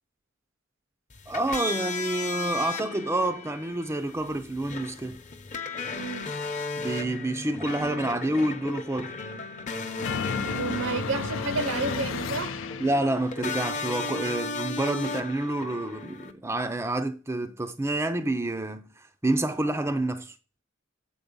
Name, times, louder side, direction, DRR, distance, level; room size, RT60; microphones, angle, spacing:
sound 1, 1.1-16.3, left 3 dB, 35° left, 0.9 m, -35 dB
voice 1, 1.3-5.2 6.8-9.2 12.8-20.4, right 1 dB, 10° right, 0.5 m, -28 dB
voice 2, 5.9-6.3 10.4-12.6, right 3 dB, 65° right, 0.7 m, -31 dB
sound 2, 10.0-13.2, left 6 dB, 65° left, 0.5 m, -33 dB
8.1 x 4.3 x 5.3 m
head